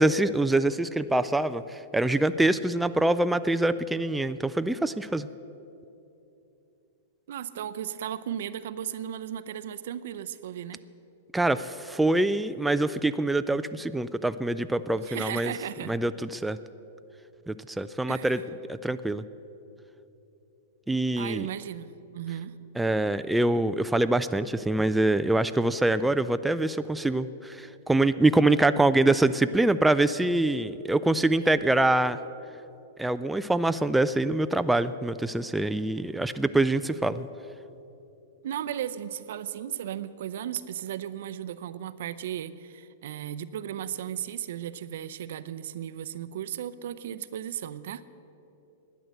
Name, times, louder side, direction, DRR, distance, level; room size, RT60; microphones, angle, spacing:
voice 1, 0.0-5.3 11.3-15.5 15.8-16.6 17.5-18.4 18.7-19.2 20.9-21.5 22.8-32.2 33.0-37.3, right 2 dB, 5° right, 11 dB, 0.3 m, -25 dB
voice 2, 7.3-10.8 15.0-15.9 18.1-18.4 21.2-22.5 38.4-48.0, right 10 dB, 70° right, 14 dB, 0.5 m, -35 dB
12.0 x 9.2 x 7.7 m, 2.9 s
hypercardioid pair, 120°, 0 cm